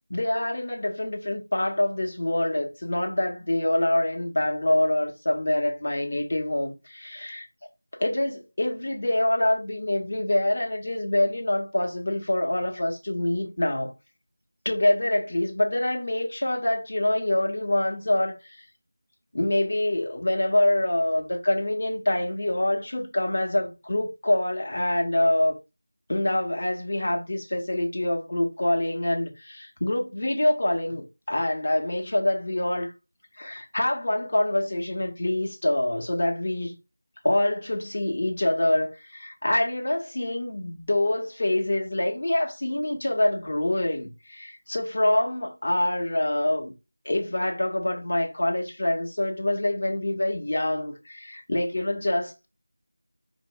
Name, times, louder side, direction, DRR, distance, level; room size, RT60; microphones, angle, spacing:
voice 1, 0.1-7.5 8.0-13.9 14.6-18.6 19.3-25.5 26.1-32.9 33.3-36.8 37.2-46.7 47.0-52.5, left 1 dB, 50° left, 1.3 m, -25 dB
5.3 x 2.5 x 3.5 m
figure-of-eight pair, 170°, 0 cm